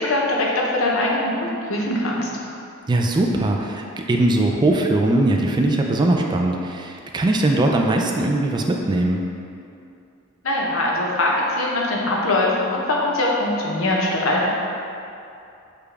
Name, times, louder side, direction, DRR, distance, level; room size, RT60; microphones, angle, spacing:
voice 1, 0.0-2.3 10.4-14.5, left 1 dB, 75° left, -3 dB, 0.8 m, -22 dB
voice 2, 2.9-9.2, right 2 dB, 20° right, 1 dB, 0.3 m, -20 dB
6.8 x 2.3 x 3.3 m, 2.6 s
head